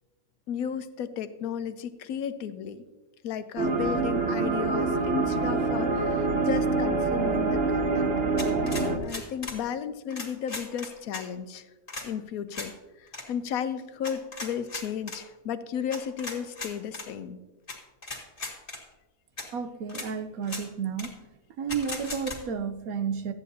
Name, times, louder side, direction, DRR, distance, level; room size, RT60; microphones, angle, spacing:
voice 1, 0.5-2.8 3.2-8.1 9.0-11.7 12.0-12.7 13.0-17.4, left 8 dB, 70° left, 12 dB, 1.0 m, -34 dB
sound 1, 3.6-9.0, right 3 dB, 45° right, 1.1 m, -26 dB
sound 2, 8.4-9.6 10.1-11.2 11.9-12.1 12.5-12.7 13.1-13.2 14.0-15.2 15.9-17.1 17.7-17.8 18.0-18.8 19.4-19.5 19.9-20.1 20.4-20.6 21.0-21.1 21.7-22.4, left 3 dB, 35° left, 2.0 m, -37 dB
voice 2, 19.5-21.2 21.6-23.3, right 6 dB, 70° right, 10 dB, 1.1 m, -32 dB
13.5 x 9.2 x 2.7 m, 1.2 s
omnidirectional pair, 1.7 m